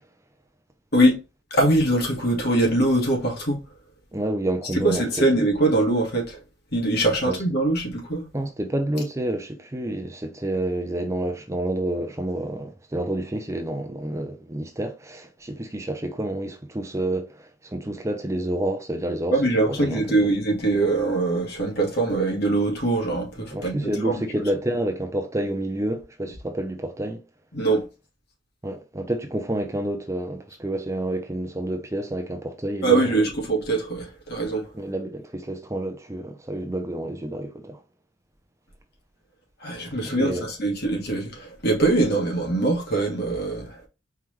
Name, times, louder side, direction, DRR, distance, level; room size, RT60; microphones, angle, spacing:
voice 1, 1.5-3.6 4.8-6.4 6.7-8.2 19.3-24.2 27.5-27.9 32.8-34.7 39.6-43.8, right 2 dB, 55° left, 2.1 m, -22 dB
voice 2, 4.1-5.3 7.2-7.4 8.3-19.4 19.7-20.3 23.5-27.2 28.6-33.2 34.7-37.8 40.1-40.5, right 1 dB, 15° right, 0.6 m, -29 dB
4.5 x 3.7 x 3.2 m
head